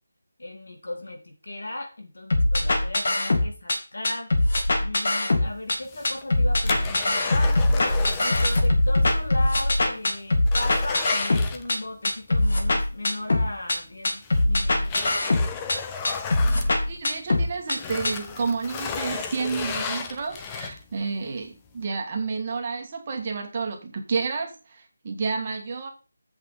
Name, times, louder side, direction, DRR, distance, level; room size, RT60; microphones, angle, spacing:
voice 1, 0.4-4.3 4.8-7.9 8.2-15.4, left 1 dB, 75° left, 2 dB, 3.8 m, -36 dB
sound 1, 2.3-3.8 4.0-5.8 6.0-11.8 12.0-13.8 14.0-15.8 16.0-17.8 18.0-18.1, left 2 dB, 45° left, 2.1 m, -22 dB
sound 2, 5.7-8.7 9.0-9.1 9.6-9.7 10.0-12.1 13.5-13.6 14.2-17.3 17.7-21.0 21.5-21.6, left 5 dB, 10° left, 0.5 m, -34 dB
voice 2, 16.9-25.9, right 4 dB, 25° right, 1 dB, 1.7 m, -30 dB
8.0 x 6.0 x 5.4 m, 0.32 s
figure-of-eight pair, 175°, 0 cm